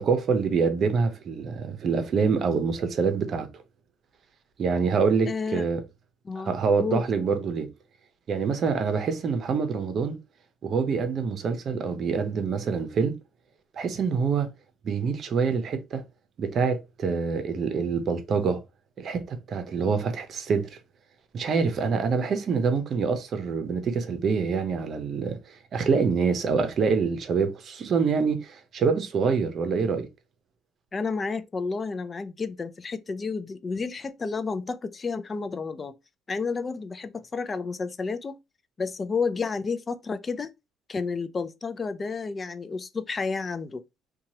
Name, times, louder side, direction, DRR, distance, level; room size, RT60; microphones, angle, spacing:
voice 1, 0.0-3.5 4.6-5.8 6.4-7.7 8.3-10.2 10.6-13.2 13.8-14.5 14.8-16.0 16.4-18.6 19.0-20.7 21.3-30.1, right 5 dB, 55° right, 0.7 m, -26 dB
voice 2, 5.3-5.6 6.2-7.1 30.9-36.0 36.3-38.4 38.8-40.5 40.9-43.8, left 4 dB, 30° left, 0.4 m, -31 dB
2.9 x 2.3 x 2.7 m
cardioid pair, 95°, 0 cm